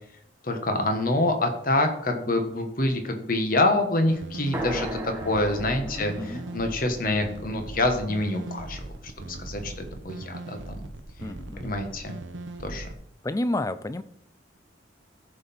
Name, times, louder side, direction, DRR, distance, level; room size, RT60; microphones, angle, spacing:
voice 1, 0.4-8.8 9.2-10.9 11.6-12.2 12.6-12.9, left 2 dB, 45° left, 5 dB, 1.3 m, -26 dB
sound 1, 4.1-12.9, right 2 dB, 70° right, 0.9 m, -39 dB
sound 2, 4.5-8.5, right 1 dB, 10° right, 1.6 m, -37 dB
voice 2, 5.8-6.5 11.2-11.7 13.2-14.0, left 1 dB, 15° left, 13 dB, 0.4 m, -31 dB
14.5 x 5.6 x 4.3 m, 0.76 s
head